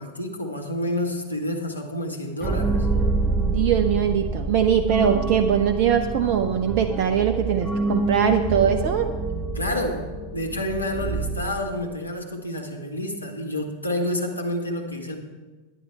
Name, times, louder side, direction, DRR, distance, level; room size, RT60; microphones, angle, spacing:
voice 1, 0.0-2.9 9.5-15.2, left 1 dB, 85° left, 2 dB, 1.4 m, -29 dB
sound 1, 2.4-12.1, right 3 dB, 15° right, 0.8 m, -27 dB
voice 2, 3.4-9.1, right 8 dB, 45° right, 7 dB, 0.6 m, -21 dB
11.0 x 10.0 x 4.6 m, 1.3 s
figure-of-eight pair, 90°, 0 cm